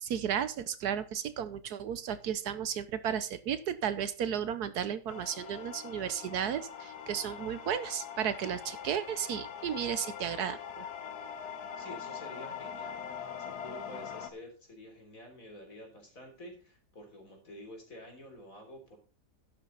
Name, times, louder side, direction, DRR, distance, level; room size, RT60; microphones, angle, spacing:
voice 1, 0.0-10.9, right 9 dB, 70° right, 13 dB, 1.3 m, -34 dB
sound 1, 5.1-14.3, left 7 dB, 65° left, 1.5 m, -42 dB
voice 2, 11.8-19.0, equal, 50° left, 2 dB, 4.0 m, -49 dB
11.5 x 8.6 x 3.9 m, 0.36 s
omnidirectional pair, 1.8 m